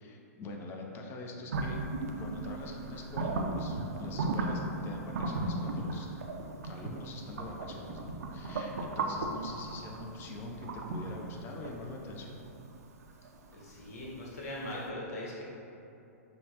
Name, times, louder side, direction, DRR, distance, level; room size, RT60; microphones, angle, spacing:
voice 1, 0.0-1.8 2.2-6.1 6.6-12.4, left 2 dB, 25° left, 0 dB, 0.5 m, -44 dB
sound 1, 1.5-14.4, right 2 dB, 75° right, 0.4 m, -36 dB
voice 2, 13.5-15.4, left 1 dB, 65° left, -5 dB, 1.0 m, -40 dB
5.5 x 2.1 x 2.8 m, 2.8 s
hypercardioid pair, 125°, 9 cm